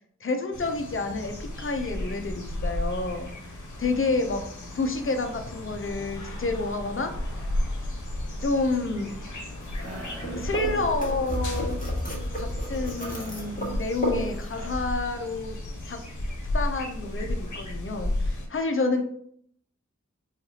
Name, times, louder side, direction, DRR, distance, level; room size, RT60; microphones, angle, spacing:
voice 1, 0.2-4.4 4.7-7.1 8.4-9.1 10.3-11.8 12.3-15.6 15.9-16.0 16.5-19.0, left 3 dB, 45° left, 5 dB, 0.5 m, -29 dB
sound 1, 0.5-18.5, left 1 dB, 90° left, 0.7 m, -34 dB
sound 2, 9.6-14.7, equal, 30° left, 1.2 m, -32 dB
sound 3, 9.8-11.3 13.0-15.6, right 1 dB, 55° right, 1.0 m, -46 dB
4.4 x 2.4 x 2.8 m, 0.64 s
wide cardioid pair, 65°, 29 cm